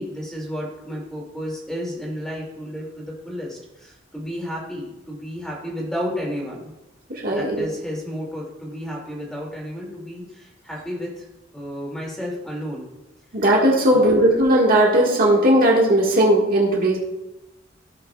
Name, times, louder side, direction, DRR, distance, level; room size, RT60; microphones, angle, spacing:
voice 1, 0.0-6.7 7.3-11.3 11.5-12.9 13.9-14.2, equal, 5° left, -3 dB, 2.3 m, -32 dB
voice 2, 7.1-7.7 13.3-17.0, right 1 dB, 50° right, -2 dB, 1.6 m, -17 dB
16.0 x 5.7 x 2.3 m, 0.97 s
head